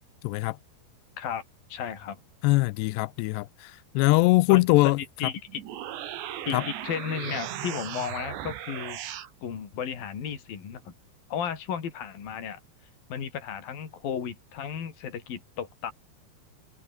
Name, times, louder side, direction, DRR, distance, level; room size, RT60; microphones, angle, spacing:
voice 1, 0.2-0.6 2.4-3.5 4.0-5.0 6.5-6.6, left 22 dB, 80° left, 2.7 m, -21 dB
voice 2, 1.7-2.2 4.5-4.9 5.2-5.6 6.5-9.0 9.4-10.9 11.3-12.6 13.1-15.9, left 8 dB, 55° left, 5.3 m, -34 dB
sound 1, 5.5-9.3, right 11 dB, 80° right, 4.2 m, -37 dB
omnidirectional pair, 5.0 m